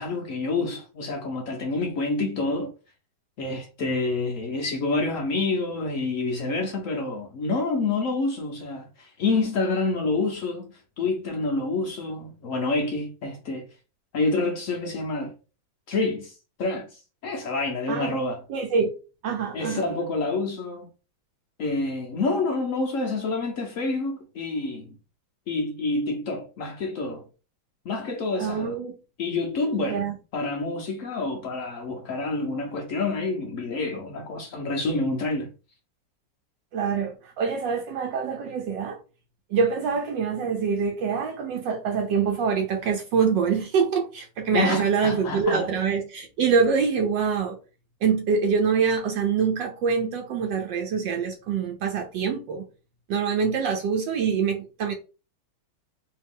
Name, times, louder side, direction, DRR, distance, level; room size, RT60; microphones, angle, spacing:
voice 1, 0.0-2.7 3.4-10.7 11.0-13.7 14.1-15.3 15.9-18.4 19.5-20.9 21.6-25.0 25.5-27.3 27.8-28.8 29.2-30.0 30.3-35.5 44.5-45.7, left 3 dB, 85° left, 0.7 m, -28 dB
voice 2, 17.9-18.2 18.5-18.9 19.2-19.8 28.4-28.9 29.9-30.1 36.7-39.0 39.5-47.6 48.0-52.6 53.1-54.9, right 6 dB, 70° right, 1.2 m, -25 dB
3.2 x 2.7 x 3.5 m
omnidirectional pair, 2.2 m